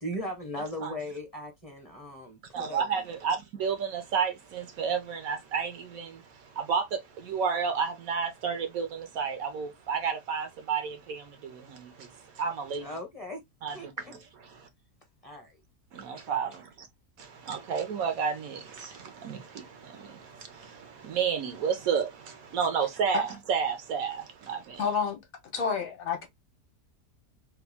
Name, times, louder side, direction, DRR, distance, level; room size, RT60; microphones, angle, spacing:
voice 1, 0.0-2.9 12.8-13.4 13.7-14.1 15.2-15.6, left 1 dB, 30° left, 0.7 m, -38 dB
voice 2, 2.5-4.3 4.8-5.7 6.7-6.8 7.3-8.9 9.2-10.9 12.4-12.9 13.6-13.7 16.3-16.5 17.5-18.5 21.1-22.1 22.5-24.2 24.5-24.6, right 6 dB, 65° right, 1.0 m, -29 dB
voice 3, 24.8-25.2 25.5-26.3, left 6 dB, 60° left, 1.2 m, -29 dB
3.4 x 2.3 x 3.4 m
omnidirectional pair, 1.8 m